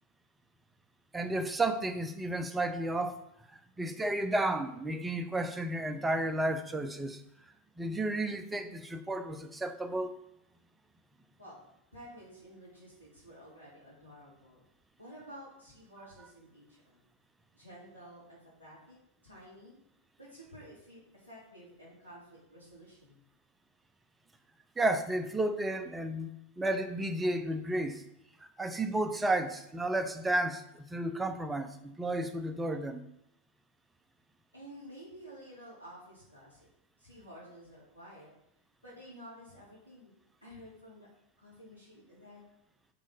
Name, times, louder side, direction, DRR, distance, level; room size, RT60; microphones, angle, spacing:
voice 1, 1.1-3.2 3.5-7.2 7.8-10.1 24.8-28.0 28.6-33.0, right 1 dB, 10° right, 6 dB, 0.6 m, -32 dB
voice 2, 11.9-14.7 15.0-17.0 17.5-19.0 19.2-19.8 20.2-23.2 34.5-36.6 37.0-38.3 38.8-40.1 40.4-41.1 41.4-42.4, equal, 85° left, -8 dB, 2.5 m, -52 dB
5.0 x 3.7 x 5.2 m, 0.79 s
figure-of-eight pair, 90°, 0 cm